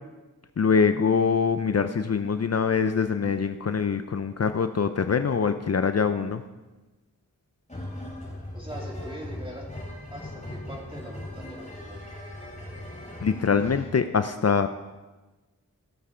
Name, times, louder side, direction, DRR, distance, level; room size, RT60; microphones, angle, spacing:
voice 1, 0.6-6.4 13.2-14.7, left 6 dB, 50° left, 9 dB, 0.5 m, -24 dB
sound 1, 7.7-14.0, left 1 dB, 20° left, 3.2 m, -39 dB
voice 2, 8.5-9.7 10.1-12.1, equal, 15° right, -2 dB, 2.8 m, -42 dB
16.5 x 7.4 x 4.4 m, 1.2 s
wide cardioid pair, 70°, 32 cm